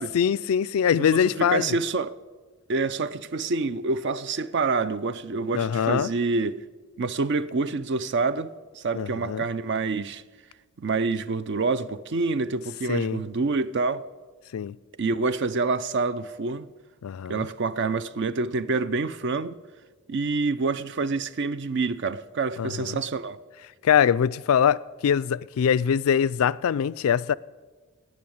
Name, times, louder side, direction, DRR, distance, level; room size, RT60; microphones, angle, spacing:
voice 1, 0.1-1.8 5.5-6.1 8.9-9.4 12.9-13.2 14.5-14.8 17.0-17.5 22.6-23.0 23.8-27.3, left 8 dB, 70° left, 0.3 m, -23 dB
voice 2, 1.0-2.1 2.7-6.5 7.0-10.2 10.8-14.0 15.0-16.7 17.3-19.6 20.1-23.4, right 3 dB, 55° right, 0.5 m, -27 dB
18.5 x 6.4 x 8.7 m
head